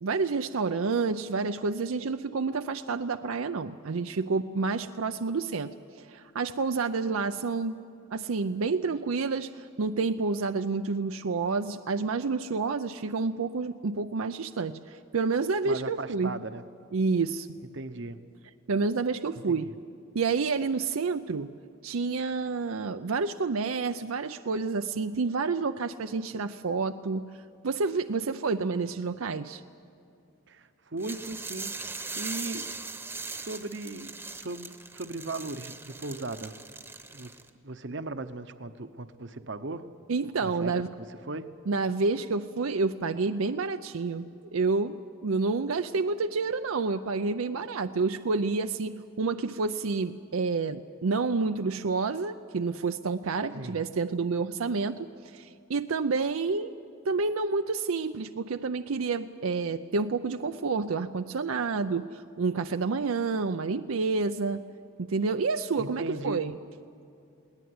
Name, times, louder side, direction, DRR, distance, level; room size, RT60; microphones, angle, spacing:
voice 1, 0.0-7.8 8.1-16.3 16.9-17.5 18.7-19.7 20.1-21.5 21.8-27.2 27.6-29.6 40.1-40.9 41.7-44.3 44.5-56.7 57.1-64.6 65.0-66.5, right 4 dB, 85° right, 8 dB, 0.6 m, -29 dB
voice 2, 15.6-16.6 17.7-18.2 19.5-19.7 30.5-32.7 33.3-36.6 37.1-37.3 37.6-39.9 40.4-41.5 53.5-53.8 65.8-66.4, right 2 dB, 55° right, 11 dB, 0.9 m, -37 dB
sound 1, 31.0-37.5, right 3 dB, 10° right, 1.0 m, -40 dB
21.5 x 18.0 x 9.6 m, 2.5 s
head